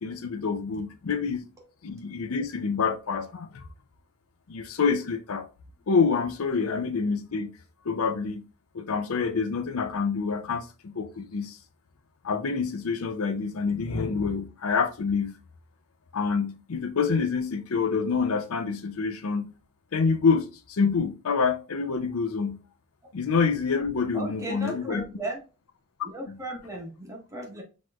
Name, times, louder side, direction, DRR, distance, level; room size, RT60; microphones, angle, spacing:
voice 1, 0.0-1.4 1.8-3.7 4.5-5.5 5.9-7.5 7.8-8.4 8.7-11.6 12.2-15.4 16.1-19.5 19.9-22.6 23.1-25.0 26.3-26.4, left 5 dB, 75° left, 0.6 m, -27 dB
voice 2, 24.1-25.4 26.0-27.6, right 1 dB, 15° right, 1.2 m, -36 dB
6.3 x 3.0 x 2.3 m
head